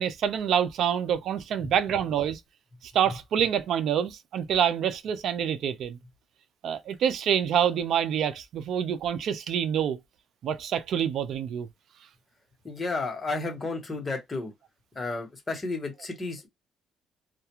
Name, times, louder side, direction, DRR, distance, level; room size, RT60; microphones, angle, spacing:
voice 1, 0.0-2.4 2.8-6.0 6.6-10.0 10.4-11.7, right 9 dB, 75° right, 0.4 m, -26 dB
voice 2, 12.6-14.5 14.9-16.5, left 3 dB, 25° left, 1.1 m, -32 dB
2.4 x 2.2 x 2.9 m
cardioid pair, 90°, 0 cm